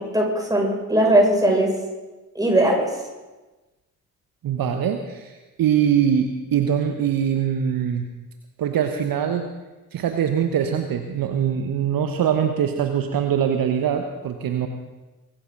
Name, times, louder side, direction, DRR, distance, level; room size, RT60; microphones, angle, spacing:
voice 1, 0.1-1.7 2.3-2.9, right 1 dB, 10° right, -1 dB, 6.6 m, -19 dB
voice 2, 4.4-8.1 8.6-9.5 9.9-14.7, right 8 dB, 50° right, 6 dB, 1.2 m, -23 dB
24.0 x 12.5 x 4.0 m, 1.2 s
figure-of-eight pair, 45°, 44 cm